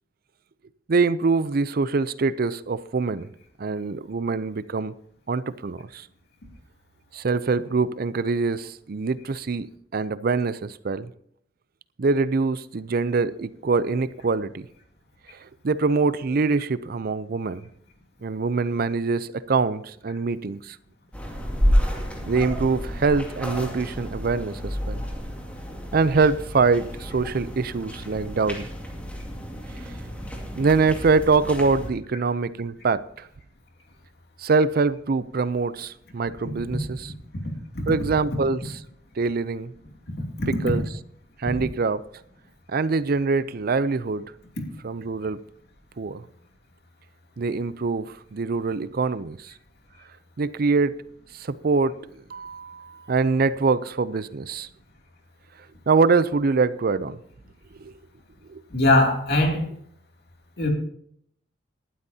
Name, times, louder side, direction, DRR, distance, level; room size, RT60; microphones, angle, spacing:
voice 1, 0.9-3.3 3.6-4.9 5.3-6.1 7.1-9.7 9.9-11.1 12.0-14.7 15.6-17.6 18.2-20.8 22.3-25.0 25.9-28.7 30.6-33.3 34.4-37.1 37.9-38.6 39.2-39.7 40.6-40.8 41.4-42.0 42.7-44.3 44.8-45.4 46.0-46.2 47.4-49.5 50.4-51.0 51.3-54.7 55.9-57.2 57.8-57.9 58.5-58.6, right 4 dB, 55° right, 0.5 m, -24 dB
sound 1, 21.1-31.9, equal, 10° left, 2.3 m, -30 dB
voice 2, 40.2-40.5 58.7-59.6 60.6-60.7, left 2 dB, 60° left, 2.7 m, -21 dB
19.0 x 12.0 x 2.8 m
head